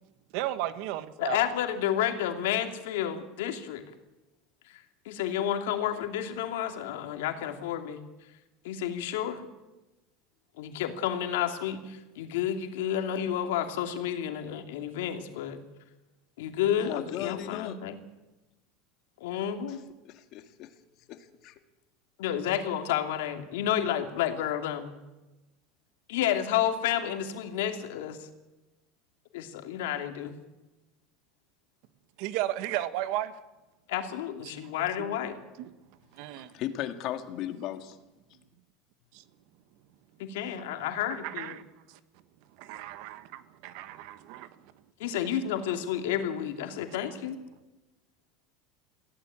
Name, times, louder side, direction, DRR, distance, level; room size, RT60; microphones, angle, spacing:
voice 1, 0.3-1.4 32.2-33.3 35.0-35.1 35.6-35.7 36.1-36.5 39.1-39.2 41.1-41.6 41.9-42.0 42.6-44.5, right 14 dB, 60° right, 13 dB, 1.4 m, -34 dB
voice 2, 1.2-3.9 4.7-8.1 8.6-9.5 10.6-15.6 16.4-18.0 19.2-19.8 22.2-24.9 26.1-28.3 29.3-30.4 33.9-35.4 40.2-41.6 45.0-47.4, left 10 dB, 85° left, 6 dB, 2.7 m, -31 dB
voice 3, 16.8-17.8 19.7-19.8 20.0-20.7 21.1-21.5 36.4-38.0, left 12 dB, 45° left, 8 dB, 2.0 m, -36 dB
22.0 x 16.0 x 8.9 m, 1.1 s
supercardioid pair, 155°, 0 cm